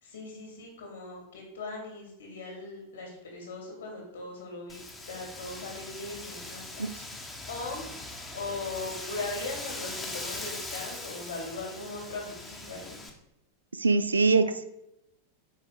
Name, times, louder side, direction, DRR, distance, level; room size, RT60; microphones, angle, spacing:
voice 1, 0.0-4.8 5.1-7.2 7.5-7.8 8.3-13.0, left 3 dB, 65° left, 0 dB, 2.3 m, -39 dB
Wind, 4.7-13.1, left 2 dB, 10° left, 1.0 m, -41 dB
voice 2, 13.8-14.6, right 4 dB, 75° right, 12 dB, 0.4 m, -23 dB
6.4 x 4.8 x 3.7 m, 0.85 s
figure-of-eight pair, 90°, 0 cm